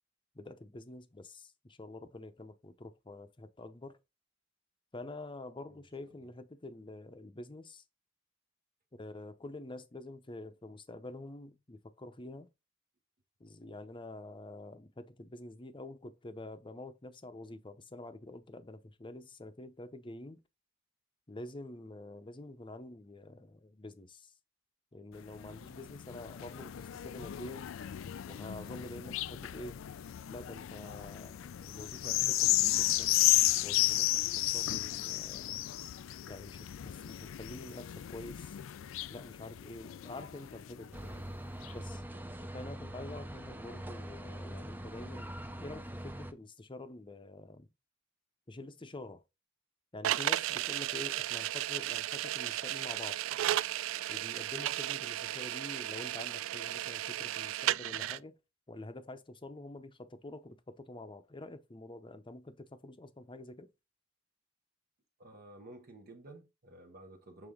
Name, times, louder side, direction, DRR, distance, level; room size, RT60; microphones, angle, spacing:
voice 1, 0.3-4.0 4.9-7.8 8.9-12.5 13.4-20.4 21.3-24.3 24.9-27.7 28.3-29.8 30.3-33.1 33.6-35.7 36.3-38.6 39.1-41.2 41.7-42.0 42.5-47.7 48.5-49.2 49.9-53.2 54.1-58.4 58.7-63.7, left 2 dB, 25° left, 0.7 m, -47 dB
sound 1, 25.2-41.0 41.6-41.7, left 15 dB, 75° left, 0.3 m, -33 dB
sound 2, 40.9-46.3, right 1 dB, 10° right, 0.6 m, -43 dB
voice 2, 42.1-42.5 65.2-67.5, right 2 dB, 50° right, 0.9 m, -53 dB
sound 3, 50.0-58.2, right 13 dB, 75° right, 0.3 m, -34 dB
7.0 x 3.7 x 3.7 m
head